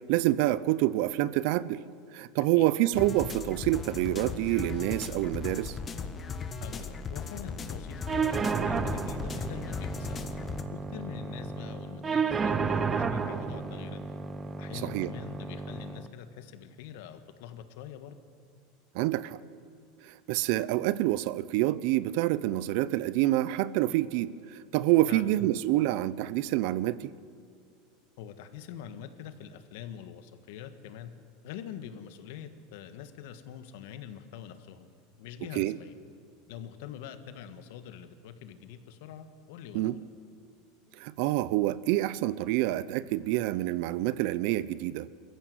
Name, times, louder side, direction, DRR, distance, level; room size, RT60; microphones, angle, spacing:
voice 1, 0.1-1.8 2.1-5.8 14.8-15.1 18.9-19.4 20.0-27.1 35.5-35.8 39.7-39.9 41.0-45.1, right 16 dB, 65° right, 19 dB, 0.7 m, -27 dB
sound 1, 2.9-10.6, left 5 dB, 25° left, 1.4 m, -37 dB
voice 2, 6.6-10.2 10.7-14.2 14.6-18.2 25.1-25.3 28.2-31.1 31.4-35.9 36.5-40.0, left 9 dB, 70° left, 9 dB, 1.6 m, -44 dB
sound 2, 8.1-16.1, right 5 dB, 20° right, 1.0 m, -32 dB
22.0 x 14.5 x 9.5 m, 2.1 s
supercardioid pair, 125°, 0 cm